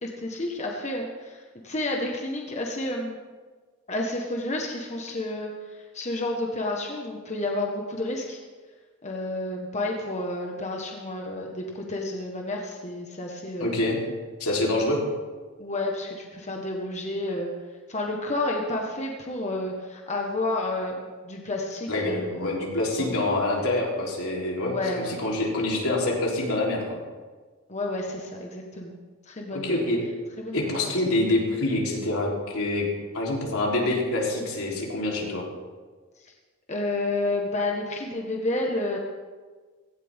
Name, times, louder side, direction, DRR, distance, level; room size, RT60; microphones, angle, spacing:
voice 1, 0.0-3.2 3.9-8.4 9.0-13.8 15.6-17.5 17.9-22.6 23.0-23.1 24.6-25.2 27.7-29.0 29.2-29.9 30.4-30.9 36.2-36.3 36.7-39.0, left 2 dB, 30° left, 0 dB, 1.5 m, -30 dB
voice 2, 13.6-14.0 14.4-15.0 21.9-26.8 29.5-30.0 30.5-32.9 33.1-35.4, left 2 dB, 80° left, -3 dB, 3.8 m, -26 dB
17.0 x 16.5 x 3.7 m, 1.4 s
head